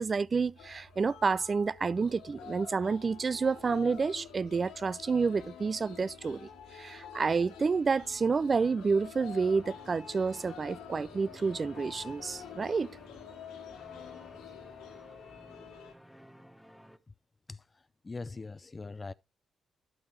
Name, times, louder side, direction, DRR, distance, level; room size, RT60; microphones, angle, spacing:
voice 1, 0.0-12.9, right 4 dB, 45° right, 0.4 m, -29 dB
sound 1, 0.6-15.9, left 8 dB, 90° left, 1.7 m, -48 dB
sound 2, 9.3-17.0, equal, ahead, 1.0 m, -54 dB
voice 2, 17.5-19.1, left 3 dB, 35° left, 0.4 m, -42 dB
11.5 x 6.2 x 3.1 m
supercardioid pair, 50°, 0 cm